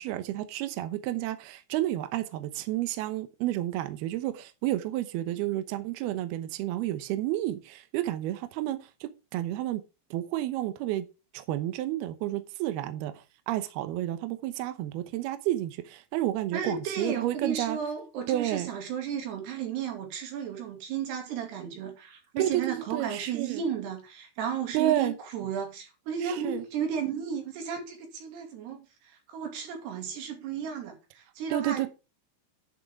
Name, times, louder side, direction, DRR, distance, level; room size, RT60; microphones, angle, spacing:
voice 1, 0.0-9.8 10.1-11.1 11.3-13.1 13.5-17.8 18.3-18.7 22.4-23.6 24.7-25.1 26.4-26.6 31.5-31.9, right 14 dB, 85° right, 2.2 m, -30 dB
voice 2, 16.5-31.9, right 7 dB, 60° right, 4.3 m, -34 dB
10.5 x 9.1 x 3.6 m
omnidirectional pair, 5.8 m